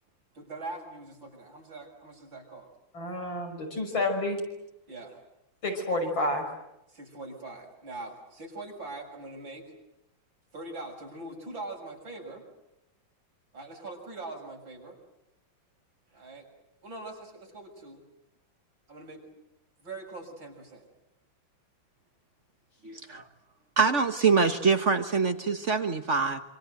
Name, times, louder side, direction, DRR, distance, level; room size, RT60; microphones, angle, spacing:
voice 1, 0.3-2.7 4.9-5.2 6.9-9.7 10.5-12.4 13.5-15.0 16.1-16.5 16.8-18.0 18.9-19.2 19.8-20.8, right 2 dB, 75° right, 1 dB, 7.3 m, -42 dB
voice 2, 2.9-4.4 5.6-6.4, left 2 dB, 85° left, 3 dB, 6.7 m, -29 dB
voice 3, 22.8-23.2 23.8-26.4, right 5 dB, 40° right, 8 dB, 1.4 m, -24 dB
27.0 x 26.5 x 7.9 m, 0.88 s
omnidirectional pair, 2.1 m